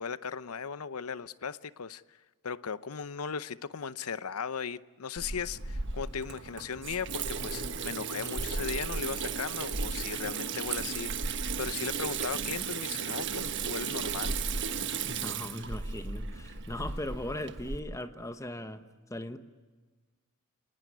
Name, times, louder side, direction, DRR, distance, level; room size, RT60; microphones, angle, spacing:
voice 1, 0.0-2.2 2.4-14.3, left 6 dB, 80° left, 0.8 m, -37 dB
Water tap faucet / Sink (filling or washing), 5.2-17.8, right 5 dB, 55° right, 1.4 m, -35 dB
voice 2, 15.1-18.8 19.1-19.4, left 1 dB, 15° left, 1.1 m, -38 dB
27.0 x 19.5 x 9.7 m
head